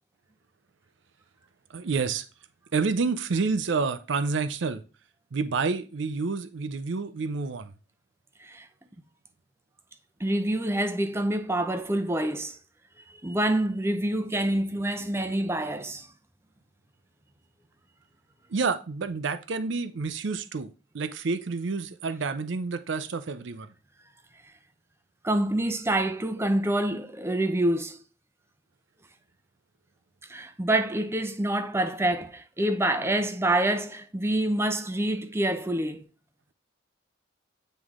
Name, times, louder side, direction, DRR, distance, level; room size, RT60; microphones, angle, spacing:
voice 1, 1.7-2.2 2.7-4.8 5.3-7.7 18.5-23.7, right 4 dB, 65° right, 0.5 m, -29 dB
voice 2, 10.2-12.6 13.2-16.1 25.2-28.0 30.3-36.1, right 1 dB, 15° right, 0.5 m, -27 dB
9.0 x 3.2 x 3.6 m
head